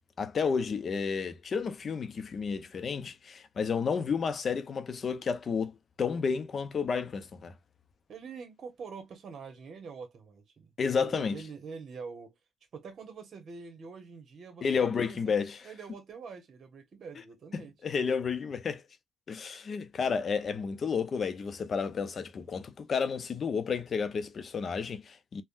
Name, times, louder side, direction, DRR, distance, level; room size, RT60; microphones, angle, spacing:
voice 1, 0.2-7.5 10.8-11.4 14.6-15.7 17.5-18.8 19.3-25.4, left 5 dB, 45° left, 0.6 m, -31 dB
voice 2, 8.1-12.3 12.7-15.3 15.6-17.7, right 5 dB, 55° right, 1.1 m, -45 dB
3.5 x 2.1 x 2.5 m
cardioid pair, 90°, 0 cm